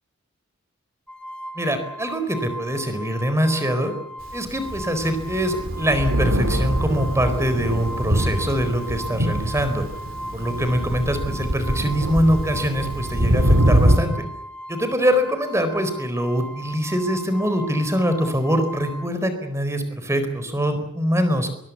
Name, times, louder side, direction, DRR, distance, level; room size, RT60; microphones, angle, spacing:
sound 1, 1.1-19.1, right 1 dB, 5° left, 3.0 m, -37 dB
voice 1, 1.5-3.9 4.3-9.8 10.3-14.1 14.7-21.5, equal, 15° right, 9 dB, 4.3 m, -23 dB
Thunder, 4.5-14.0, equal, 75° right, 2.8 m, -23 dB
22.5 x 22.0 x 8.5 m, 0.71 s
head